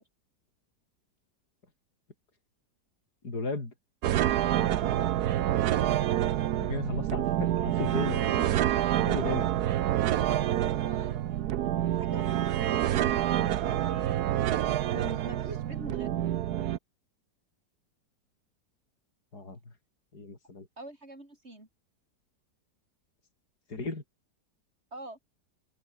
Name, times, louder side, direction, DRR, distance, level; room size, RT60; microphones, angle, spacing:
voice 1, 3.2-3.7 6.6-8.5 9.1-9.5 19.3-19.6 20.1-20.7 23.7-24.0, left 3 dB, 60° left, 5.3 m, -35 dB
sound 1, 4.0-16.8, right 12 dB, 70° right, 1.3 m, -27 dB
voice 2, 10.1-11.2 11.9-14.2 14.4-16.2 20.8-21.7 24.9-25.2, right 2 dB, 35° right, 6.3 m, -45 dB
open air
omnidirectional pair, 1.9 m